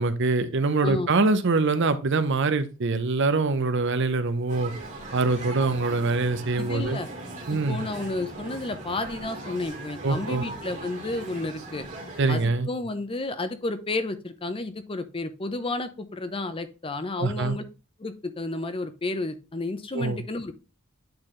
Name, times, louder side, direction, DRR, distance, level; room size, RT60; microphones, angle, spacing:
voice 1, 0.0-4.7 5.1-7.0 7.5-7.8 10.0-10.4 12.2-12.7 17.2-17.6 19.9-20.2, right 3 dB, 60° right, 11 dB, 0.7 m, -24 dB
voice 2, 0.8-1.1 5.6-5.7 6.6-7.1 7.5-11.9 12.3-17.6 18.0-20.6, left 2 dB, 25° left, 11 dB, 0.6 m, -31 dB
sound 1, 4.5-12.5, right 2 dB, 40° right, 1.8 m, -39 dB
8.8 x 3.9 x 3.1 m, 0.33 s
head